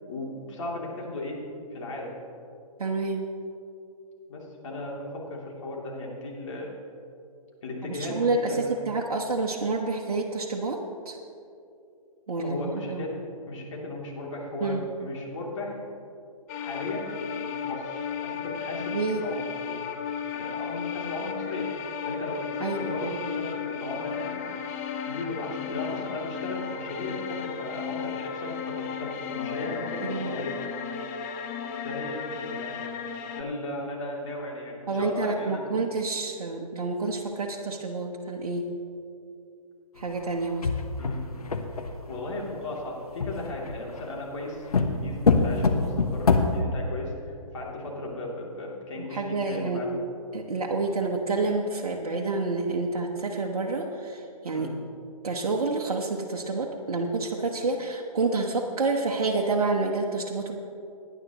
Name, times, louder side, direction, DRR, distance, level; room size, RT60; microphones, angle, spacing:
voice 1, 0.1-1.4 1.7-2.1 4.3-6.7 7.6-8.2 8.5-8.9 12.4-13.1 13.5-15.8 16.5-17.1 17.4-19.8 20.3-21.7 22.0-24.7 25.1-30.5 31.8-32.8 33.4-35.6 41.0-41.7 42.1-50.0 54.5-54.7, left 2 dB, 55° left, -3 dB, 3.0 m, -36 dB
voice 2, 2.8-3.3 7.8-10.8 11.0-11.2 12.3-13.1 14.6-14.8 18.9-19.2 22.6-22.8 23.0-23.4 30.0-30.4 34.9-38.7 40.0-40.7 49.1-49.8 50.3-54.7 55.2-60.6, right 3 dB, 70° right, -1 dB, 1.1 m, -28 dB
sound 1, 16.5-33.4, left 7 dB, 25° left, 0.7 m, -34 dB
sound 2, 40.5-42.1 43.2-44.0 44.7-46.6, left 4 dB, 75° left, 1.1 m, -24 dB
17.5 x 10.0 x 3.0 m, 2.6 s
figure-of-eight pair, 135°, 19 cm